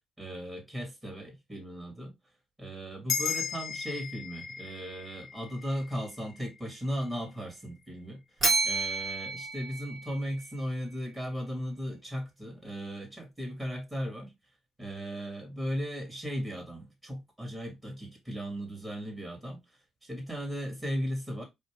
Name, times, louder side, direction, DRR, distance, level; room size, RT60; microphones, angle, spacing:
voice 1, 0.2-2.1 2.6-8.2 8.6-14.3 14.8-19.6 20.0-21.4, equal, 15° right, 2.4 m, -36 dB
sound 1, 3.1-7.8, left 7 dB, 60° left, 1.0 m, -37 dB
Bell, 8.4-10.6, right 3 dB, 35° right, 2.2 m, -30 dB
4.2 x 2.6 x 3.5 m
supercardioid pair, 55°, 0 cm